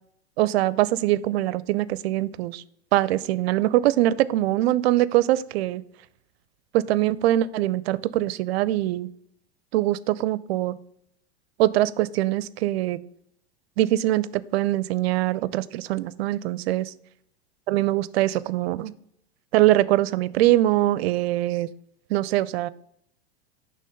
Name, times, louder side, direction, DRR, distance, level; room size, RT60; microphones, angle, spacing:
voice 1, 0.4-2.6 2.9-5.8 6.7-9.1 9.7-10.7 11.6-13.0 13.8-16.9 17.7-18.9 19.5-21.7 22.1-22.7, right 15 dB, 70° right, 18 dB, 0.5 m, -23 dB
5.4 x 3.4 x 5.2 m, 0.72 s
hypercardioid pair, 125°, 32 cm